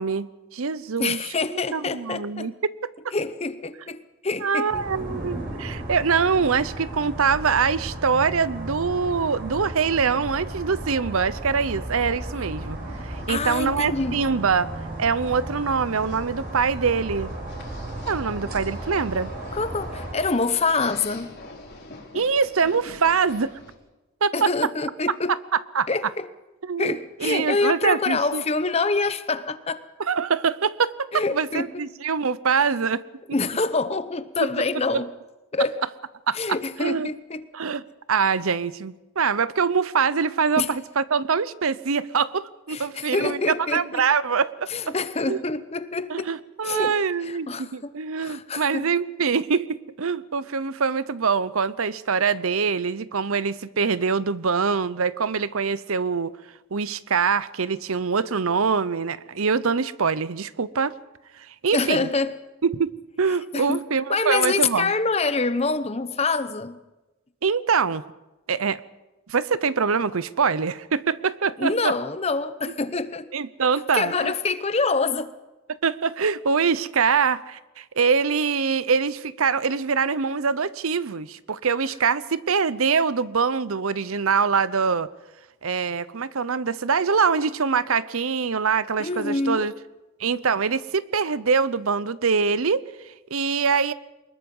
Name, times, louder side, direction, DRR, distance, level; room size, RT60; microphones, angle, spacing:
voice 1, 0.0-2.7 4.4-12.8 13.0-14.7 15.0-17.3 18.1-19.3 22.1-23.6 24.2-24.5 25.3-25.4 25.7-25.9 26.6-28.4 30.0-33.0 34.4-34.5 34.9-35.0 36.3-36.4 36.8-37.1 37.5-37.8 38.1-44.9 45.3-45.4 46.1-56.3 56.7-60.9 61.4-62.1 62.6-62.9 63.2-64.9 67.4-68.0 68.5-68.8 69.3-71.9 73.3-74.3 75.8-85.1 85.6-89.7 90.2-93.9, right 5 dB, 70° right, 0.7 m, -24 dB
voice 2, 1.0-2.5 3.1-4.9 13.3-14.2 19.5-21.3 24.3-25.4 25.9-26.3 26.8-29.8 31.1-31.9 33.3-35.1 35.5-35.8 36.3-37.4 40.6-40.7 42.7-44.0 44.7-46.3 46.6-47.9 48.2-48.9 61.7-62.4 63.5-63.8 64.1-66.8 71.6-73.3 73.9-75.3 89.0-89.7, left 3 dB, 30° left, 0.9 m, -26 dB
sound 1, 4.7-20.2, right 1 dB, 45° right, 6.2 m, -35 dB
sound 2, 12.6-23.7, left 2 dB, 50° left, 4.4 m, -44 dB
24.0 x 21.0 x 5.5 m
head